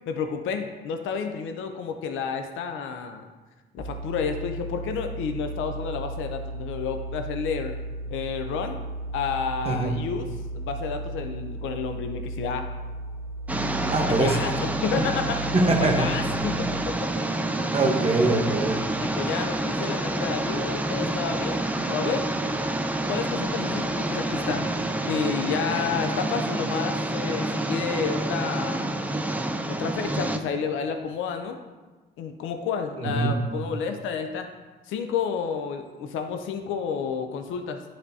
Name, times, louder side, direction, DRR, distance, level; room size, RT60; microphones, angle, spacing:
voice 1, 0.1-3.3 3.7-7.7 8.1-8.8 9.1-10.3 10.5-12.7 14.2-16.9 19.0-22.3 23.1-24.7 25.0-28.9 29.7-31.6 32.2-34.5 34.9-37.9, left 6 dB, 85° left, 6 dB, 0.5 m, -30 dB
sound 1, 3.8-16.8, right 1 dB, 65° right, 0.9 m, -35 dB
sound 2, 13.5-30.4, right 1 dB, 10° right, 0.4 m, -28 dB
voice 2, 13.9-14.4 15.5-16.3 17.7-18.9 33.0-33.4, right 2 dB, 30° right, 2 dB, 1.0 m, -23 dB
10.0 x 3.4 x 2.7 m, 1.3 s
cardioid pair, 90°, 20 cm